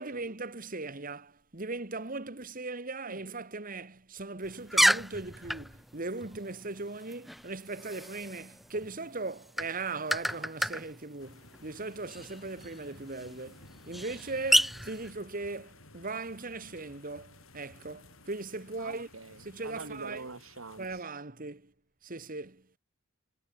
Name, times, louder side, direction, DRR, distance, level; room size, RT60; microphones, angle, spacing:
voice 1, 0.0-19.1 19.4-20.3 20.8-21.7 22.0-22.7, right 3 dB, 40° right, 1.8 m, -39 dB
sound 1, 4.4-15.1, equal, ahead, 0.7 m, -32 dB
sound 2, 11.2-21.0, left 2 dB, 80° left, 7.1 m, -55 dB
voice 2, 18.8-21.1, right 3 dB, 80° right, 2.1 m, -45 dB
head